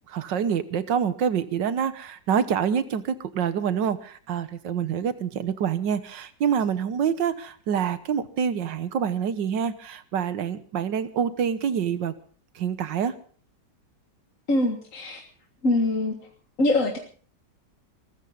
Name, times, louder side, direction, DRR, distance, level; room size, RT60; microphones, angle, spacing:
voice 1, 0.1-12.1 12.6-13.1, right 7 dB, 90° right, 12 dB, 1.8 m, -26 dB
voice 2, 14.5-15.2 15.6-16.2 16.6-17.0, left 2 dB, 50° left, 2 dB, 2.1 m, -23 dB
23.5 x 15.0 x 4.0 m, 0.44 s
omnidirectional pair, 1.9 m